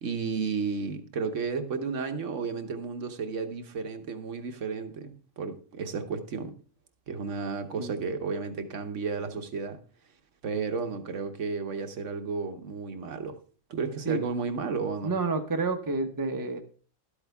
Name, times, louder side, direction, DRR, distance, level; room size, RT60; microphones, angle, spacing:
voice 1, 0.0-6.5 7.1-9.8 10.4-13.4 13.7-15.1, right 5 dB, 70° right, 1.3 m, -33 dB
voice 2, 15.0-16.6, right 3 dB, 20° right, 0.9 m, -29 dB
12.0 x 8.3 x 3.4 m
omnidirectional pair, 1.3 m